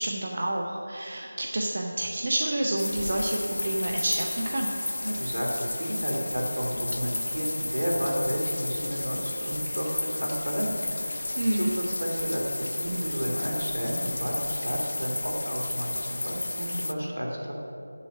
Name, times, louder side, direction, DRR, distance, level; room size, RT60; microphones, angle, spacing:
voice 1, 0.0-4.7 11.4-11.7, right 1 dB, 40° right, -1 dB, 0.7 m, -29 dB
sound 1, 2.8-16.9, left 2 dB, 55° left, 0.4 m, -32 dB
voice 2, 5.0-17.5, equal, 75° right, -1 dB, 2.4 m, -32 dB
7.1 x 7.0 x 7.2 m, 2.9 s
figure-of-eight pair, 165°, 0 cm